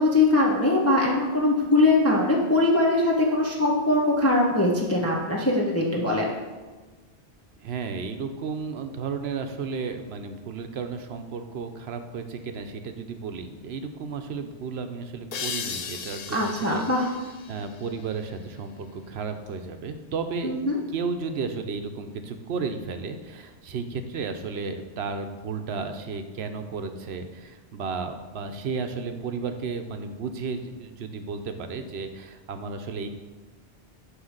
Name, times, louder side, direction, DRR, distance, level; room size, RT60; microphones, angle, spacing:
voice 1, 0.0-6.3 16.3-17.1 20.4-20.8, left 2 dB, 15° left, -3 dB, 0.9 m, -22 dB
voice 2, 7.6-16.8 17.5-20.5 20.9-33.1, right 5 dB, 70° right, 7 dB, 0.9 m, -33 dB
sound 1, 15.3-18.7, left 6 dB, 50° left, 0.5 m, -37 dB
9.5 x 3.3 x 6.5 m, 1.3 s
omnidirectional pair, 1.1 m